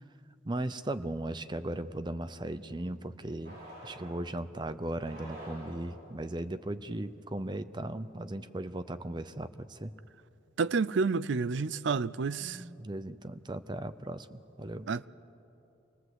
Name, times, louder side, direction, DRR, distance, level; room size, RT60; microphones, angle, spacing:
voice 1, 0.5-3.6 3.8-9.9 12.4-14.9, right 1 dB, 25° right, 0.6 m, -37 dB
sound 1, 3.4-4.3 4.9-6.1, equal, 50° right, 6.6 m, -47 dB
voice 2, 10.6-12.6 14.9-15.1, right 4 dB, 70° right, 0.5 m, -29 dB
26.0 x 18.5 x 8.0 m
head